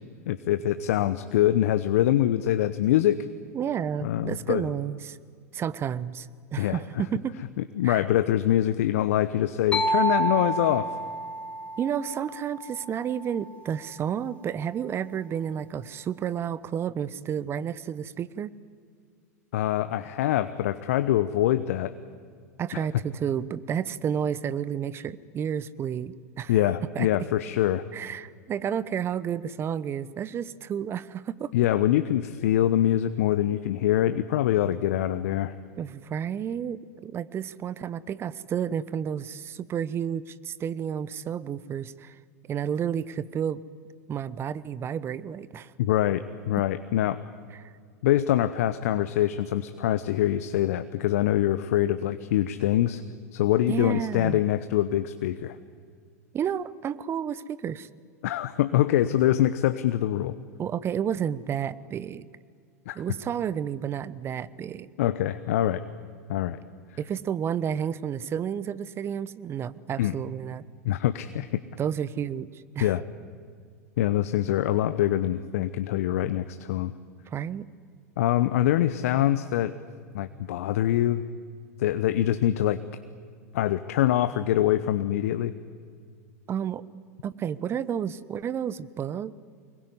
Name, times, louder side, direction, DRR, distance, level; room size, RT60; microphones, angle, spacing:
voice 1, 0.3-3.2 4.0-4.6 6.6-6.8 7.8-11.0 19.5-21.9 26.5-27.8 31.5-35.5 45.8-47.2 48.0-53.0 53.3-55.6 58.2-60.3 62.9-63.0 65.0-65.8 66.3-66.6 70.0-70.1 70.8-71.6 72.8-73.0 74.0-76.9 78.2-79.7 80.1-81.2 81.8-82.8 83.5-85.5, left 12 dB, 60° left, 12 dB, 0.9 m, -24 dB
voice 2, 3.5-5.2 5.5-7.4 7.8-8.0 11.8-18.5 22.6-26.6 26.9-27.1 27.9-31.5 35.8-42.2 42.5-43.6 44.1-45.7 47.6-47.7 53.7-54.4 56.3-57.9 60.6-62.2 62.9-64.9 67.0-70.6 71.8-72.9 77.3-77.6 86.5-86.8 87.2-89.3, right 8 dB, 30° right, 18 dB, 1.0 m, -31 dB
sound 1, 9.7-13.4, right 2 dB, 15° left, 2.0 m, -29 dB
24.5 x 21.5 x 9.7 m, 2.1 s
figure-of-eight pair, 90°, 9 cm